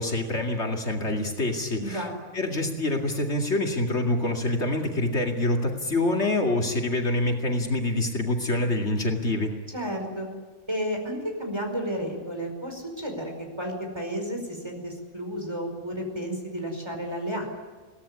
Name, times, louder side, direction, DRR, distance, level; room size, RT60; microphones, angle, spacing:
voice 1, 0.0-2.1 2.3-9.5, left 2 dB, 65° left, 2 dB, 2.7 m, -26 dB
voice 2, 1.8-2.1 9.7-10.3 10.7-17.5, equal, 20° right, 3 dB, 5.0 m, -32 dB
23.0 x 17.5 x 9.7 m, 1.4 s
omnidirectional pair, 1.3 m